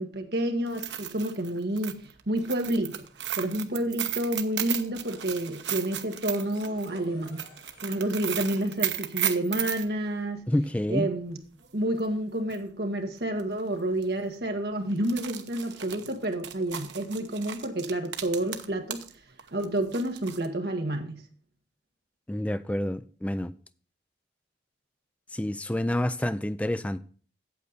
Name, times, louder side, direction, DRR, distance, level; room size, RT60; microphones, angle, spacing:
voice 1, 0.0-2.0 2.3-3.1 3.4-7.4 7.8-10.5 10.9-11.4 11.7-19.0 19.5-21.2, right 1 dB, 65° right, 1.6 m, -29 dB
sound 1, 0.7-9.9 12.0-12.1 12.5-12.6 13.4-13.6 13.9-14.0 14.9-19.1 19.4-20.5, right 11 dB, 85° right, 0.9 m, -34 dB
sound 2, 6.2-9.7, left 2 dB, 50° left, 3.3 m, -54 dB
voice 2, 10.5-11.1 22.3-23.5 25.3-27.0, left 1 dB, 10° left, 0.4 m, -28 dB
8.6 x 8.1 x 4.1 m
head